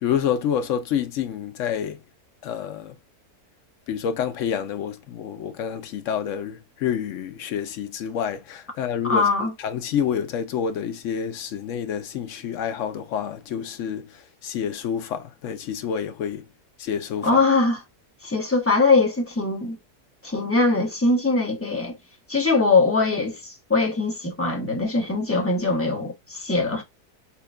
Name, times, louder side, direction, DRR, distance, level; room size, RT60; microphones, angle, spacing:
voice 1, 0.0-2.0 2.4-3.0 3.9-9.2 9.6-16.4 16.8-17.3, left 8 dB, 65° left, 0.8 m, -28 dB
voice 2, 9.1-9.5 17.2-17.8 18.2-19.8 20.2-22.0 22.3-26.8, left 3 dB, 10° left, 0.8 m, -21 dB
5.6 x 2.2 x 2.5 m
omnidirectional pair, 1.7 m